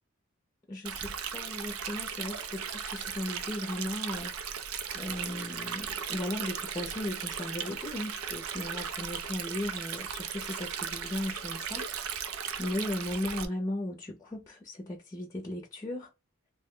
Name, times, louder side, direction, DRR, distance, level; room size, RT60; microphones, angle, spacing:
voice 1, 0.7-4.3 4.9-11.9 12.2-16.1, left 1 dB, 15° left, 0.5 m, -36 dB
Stream, 0.8-13.4, right 7 dB, 85° right, 0.5 m, -37 dB
2.8 x 2.1 x 3.6 m
head